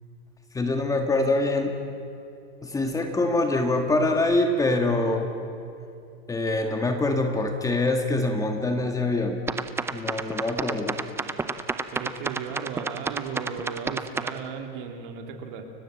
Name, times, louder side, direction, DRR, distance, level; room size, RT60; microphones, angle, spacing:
voice 1, 0.5-1.8 2.6-5.3 6.3-9.4 9.9-11.0, left 2 dB, 10° left, 4 dB, 1.6 m, -24 dB
sound 1, 9.5-14.4, right 4 dB, 10° right, 0.6 m, -30 dB
voice 2, 11.9-15.6, right 6 dB, 55° right, 5 dB, 2.8 m, -35 dB
29.5 x 15.5 x 7.8 m, 2.5 s
supercardioid pair, 150°, 30 cm